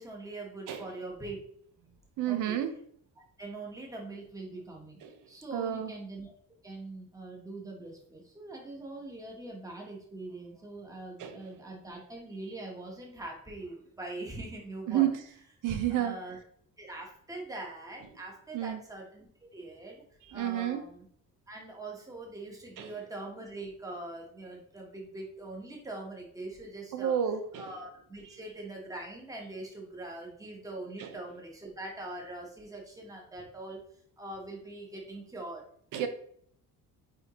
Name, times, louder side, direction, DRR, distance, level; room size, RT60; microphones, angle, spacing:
voice 1, 0.0-1.4 2.3-2.6 3.4-5.0 5.3-6.3 6.6-15.1 15.9-16.4 16.8-19.3 19.5-20.0 20.3-21.1 21.5-27.1 27.6-33.8 34.2-35.6, right 2 dB, 10° right, -1 dB, 1.3 m, -42 dB
voice 2, 2.2-2.7 5.0-5.1 5.5-5.9 11.2-11.5 14.9-15.1 15.6-16.2 18.5-18.8 20.3-20.8 22.8-23.0 26.9-27.7 28.2-28.4 31.0-31.2 35.9-36.1, right 11 dB, 75° right, 8 dB, 1.0 m, -30 dB
8.7 x 3.6 x 3.1 m, 0.64 s
cardioid pair, 180°, 32 cm